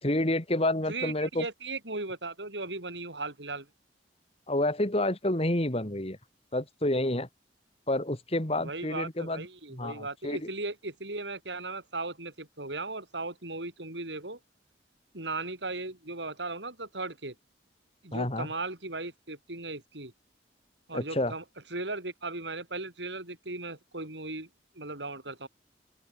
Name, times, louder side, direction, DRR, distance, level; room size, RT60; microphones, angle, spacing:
voice 1, 0.0-1.5 4.5-6.2 6.5-7.3 7.9-9.5 9.7-10.4 18.1-18.5 20.9-21.3, left 1 dB, 35° left, 2.8 m, -29 dB
voice 2, 0.9-3.7 8.6-14.4 15.1-17.3 18.0-20.1 20.9-21.4 21.7-24.5 24.7-25.5, right 3 dB, 80° right, 6.3 m, -37 dB
open air
head